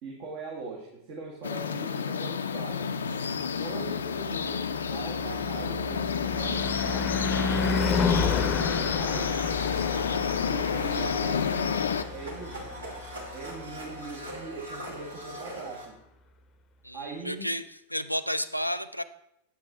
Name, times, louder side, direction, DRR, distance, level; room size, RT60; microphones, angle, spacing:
voice 1, 0.0-2.9 3.6-7.7 8.1-9.3 10.5-11.8 12.1-12.7 13.3-16.0 16.9-17.5, right 4 dB, 45° right, -1 dB, 1.3 m, -41 dB
sound 1, 1.4-12.0, left 6 dB, 70° left, 0.4 m, -30 dB
Car passing by / Truck / Engine, 3.9-14.1, left 5 dB, 25° left, 0.7 m, -32 dB
Domestic sounds home sounds, 9.0-15.9, right 1 dB, 70° right, 1.7 m, -41 dB
voice 2, 16.8-17.6 17.9-19.0, equal, 90° right, 11 dB, 0.3 m, -31 dB
8.2 x 7.5 x 3.5 m, 0.81 s
figure-of-eight pair, 90°, 0 cm